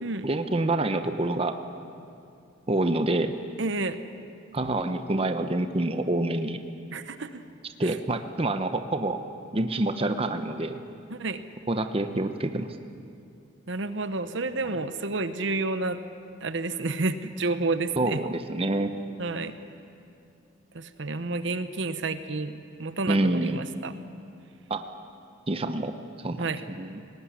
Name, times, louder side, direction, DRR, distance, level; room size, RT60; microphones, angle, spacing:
voice 1, 0.2-1.6 2.7-3.3 4.5-6.6 7.8-9.2 9.5-10.8 11.7-12.8 14.7-14.8 18.0-18.9 23.1-23.6 24.7-24.8 25.5-25.9 26.2-27.0, right 2 dB, 30° right, 8 dB, 0.8 m, -27 dB
voice 2, 3.6-4.0 6.9-7.4 7.8-7.9 11.1-11.4 13.7-16.0 16.4-18.2 19.2-19.5 20.7-22.5 22.8-23.9 26.4-26.6, right 3 dB, 65° right, 11 dB, 0.9 m, -30 dB
19.0 x 19.0 x 9.8 m, 2.5 s
head